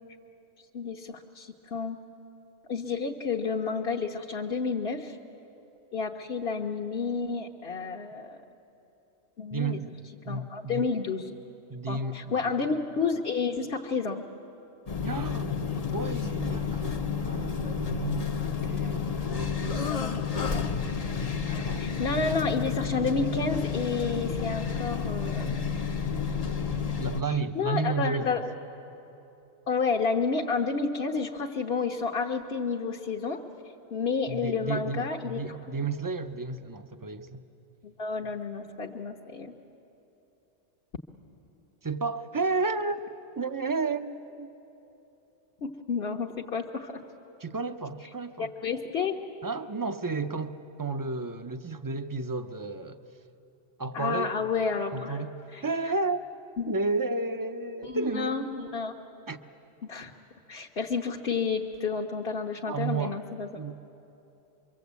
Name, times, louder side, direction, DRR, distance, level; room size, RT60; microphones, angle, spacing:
voice 1, 0.7-2.0 2.7-5.2 5.9-8.4 9.4-9.8 10.2-11.3 11.9-14.2 19.9-20.1 20.5-20.8 21.8-25.6 27.3-28.4 29.7-33.4 33.9-35.6 37.8-39.5 45.6-47.0 48.4-49.2 53.9-55.2 55.5-55.6 56.6-56.7 57.8-58.9 59.8-60.1 60.5-63.5, left 5 dB, 60° left, -1 dB, 1.3 m, -30 dB
voice 2, 9.5-10.0 10.3-10.9 11.7-12.5 15.0-19.9 21.4-21.9 27.0-28.4 34.3-37.4 41.8-44.5 47.4-48.5 49.4-53.0 53.8-54.5 54.9-56.2 56.7-58.5 59.3-59.4 62.7-63.2 63.5-63.8, right 3 dB, 20° right, 9 dB, 0.6 m, -32 dB
sound 1, 14.9-27.2, left 6 dB, 40° left, 0.8 m, -30 dB
26.0 x 23.5 x 8.2 m, 3.0 s
omnidirectional pair, 1.2 m